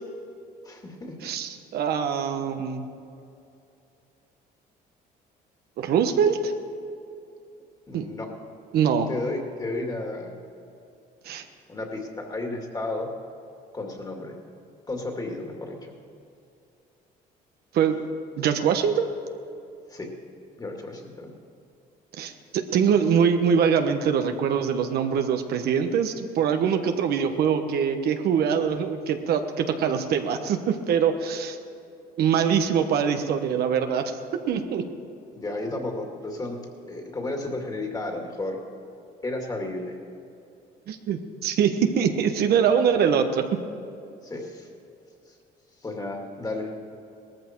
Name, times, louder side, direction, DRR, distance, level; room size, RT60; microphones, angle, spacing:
voice 1, 0.6-1.2 7.9-8.3 9.1-10.3 11.7-13.1 13.7-14.4 14.9-15.9 19.9-20.1 20.6-21.3 35.3-36.6 36.9-38.6 39.2-39.9 44.2-44.7 45.8-46.7, left 2 dB, 20° left, 2 dB, 2.5 m, -33 dB
voice 2, 1.2-2.8 5.8-6.5 7.9-8.1 8.7-9.1 11.2-11.4 17.7-18.0 18.4-19.1 22.2-31.6 32.2-34.1 34.5-34.8 40.9-43.4, right 7 dB, 70° right, 6 dB, 1.1 m, -23 dB
18.5 x 14.0 x 4.6 m, 2.6 s
cardioid pair, 110°, 17 cm